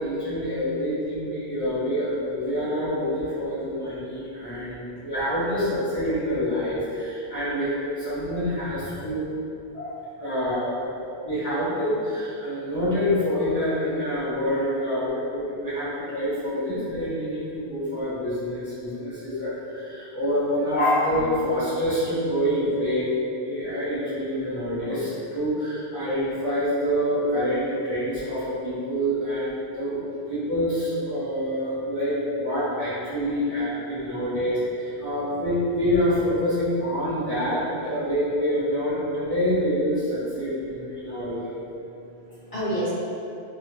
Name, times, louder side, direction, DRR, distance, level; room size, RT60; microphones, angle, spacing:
voice 1, 0.0-9.2 9.7-23.1 23.4-34.6 35.0-41.5, equal, 15° left, -13 dB, 1.3 m, -26 dB
voice 2, 33.9-34.3 35.0-35.1 41.0-41.5 41.8-42.9, right 1 dB, 45° left, -12 dB, 0.5 m, -34 dB
3.2 x 2.5 x 2.8 m, 2.7 s
omnidirectional pair, 1.1 m